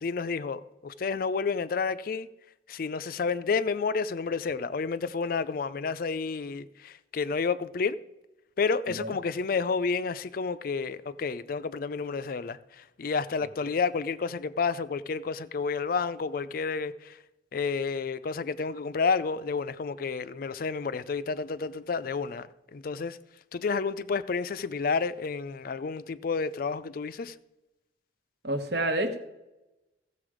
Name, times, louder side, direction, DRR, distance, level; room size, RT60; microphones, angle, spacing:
voice 1, 0.0-2.3 2.7-8.0 8.6-17.2 17.5-23.2 23.5-27.3, left 5 dB, 55° left, 0.4 m, -30 dB
voice 2, 28.4-29.2, right 1 dB, 60° right, 1.2 m, -28 dB
14.5 x 6.9 x 5.0 m
head